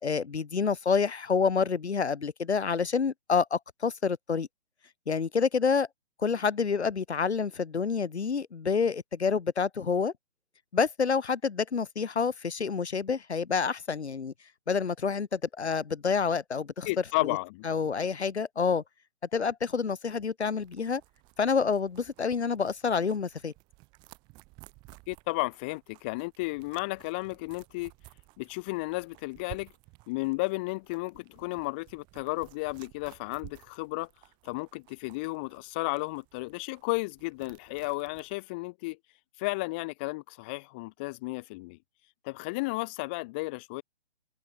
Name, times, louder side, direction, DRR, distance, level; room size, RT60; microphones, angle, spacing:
voice 1, 0.0-4.5 5.1-5.9 6.2-10.1 10.7-14.3 14.7-16.9 17.2-17.4 17.6-18.8 19.3-21.0 21.4-23.5, left 5 dB, 80° left, 3.7 m, -28 dB
voice 2, 16.8-17.6 25.1-27.9 28.4-29.7 30.1-34.1 34.4-39.0 39.4-41.8 42.2-43.8, left 25 dB, 10° left, 1.2 m, -33 dB
sound 1, 20.6-38.4, right 25 dB, 15° right, 7.9 m, -55 dB
hypercardioid pair, 180°, 33 cm